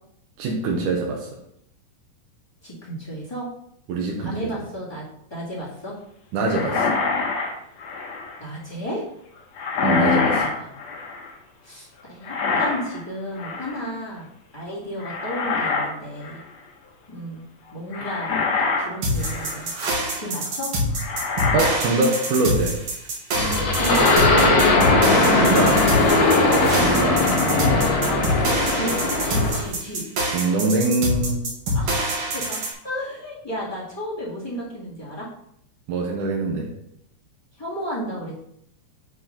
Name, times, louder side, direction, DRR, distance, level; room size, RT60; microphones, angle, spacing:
voice 1, 0.4-1.3 3.9-4.5 6.3-6.9 9.8-10.5 21.5-22.8 25.4-25.8 26.7-27.2 30.3-31.4 35.9-36.7, right 3 dB, 80° right, 0 dB, 2.4 m, -23 dB
voice 2, 2.6-3.5 4.2-5.9 8.4-9.0 10.4-10.7 11.6-16.4 17.1-17.4 17.7-19.7 20.1-20.7 23.8-24.2 25.9-26.3 28.0-28.9 29.2-30.0 31.7-35.3 37.6-38.4, equal, 10° left, -7 dB, 1.2 m, -33 dB
sound 1, 6.4-8.4 9.6-11.3 12.2-13.0 13.4-13.9 15.0-15.9 16.2-16.5 17.9-19.7 20.5-20.6 21.0-21.9 22.3-22.4 23.7-24.2, left 4 dB, 60° left, 2.1 m, -25 dB
sound 2, 19.0-32.7, equal, 55° right, 1.9 m, -25 dB
sound 3, 23.4-29.7, left 2 dB, 85° left, 0.8 m, -19 dB
9.0 x 3.9 x 3.8 m, 0.75 s
omnidirectional pair, 3.6 m